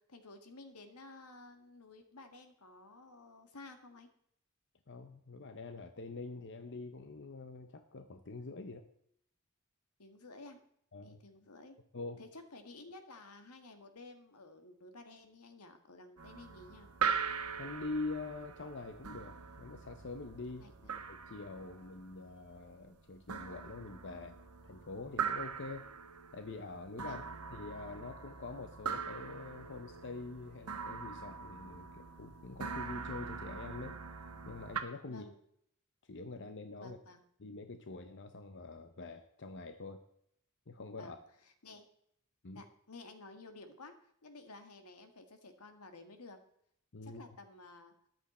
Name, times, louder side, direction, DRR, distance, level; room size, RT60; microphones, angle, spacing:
voice 1, 0.0-4.1 10.0-10.6 11.0-11.8 12.2-16.9 20.6-20.9 27.0-27.2 35.1-35.3 36.8-37.2 41.0-41.2 41.6-41.9 42.5-46.4 47.0-47.9, left 2 dB, 85° left, 7 dB, 1.8 m, -53 dB
voice 2, 4.9-8.8 10.9-11.2 11.9-12.2 17.6-20.7 21.1-24.4 24.6-25.9 26.3-27.2 27.5-34.0 34.4-35.2 36.1-37.0 37.4-40.0 40.7-41.2 42.4-42.6 46.9-47.2, left 3 dB, 55° left, 8 dB, 0.8 m, -45 dB
sound 1, 16.2-34.8, right 6 dB, 85° right, 1.3 m, -42 dB
14.0 x 10.5 x 4.4 m, 0.70 s
head